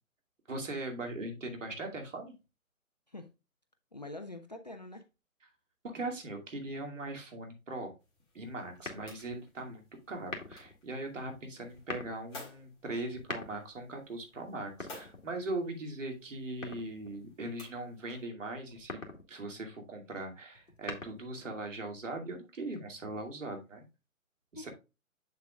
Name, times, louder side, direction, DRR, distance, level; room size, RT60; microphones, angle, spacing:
voice 1, 0.5-2.3 5.8-7.9 8.3-9.8 10.1-19.0 19.3-23.8 24.5-24.7, right 2 dB, 60° right, 2.5 m, -40 dB
voice 2, 3.9-5.1 24.5-24.7, left 2 dB, 30° left, 0.5 m, -44 dB
sound 1, 8.0-18.3, left 2 dB, 10° left, 2.0 m, -56 dB
sound 2, 8.8-9.4 10.2-10.8 11.7-12.2 13.1-13.8 14.7-15.6 16.6-17.2 18.7-19.3 20.6-21.4, left 2 dB, 65° left, 1.9 m, -43 dB
7.5 x 7.1 x 2.3 m
figure-of-eight pair, 140°, 42 cm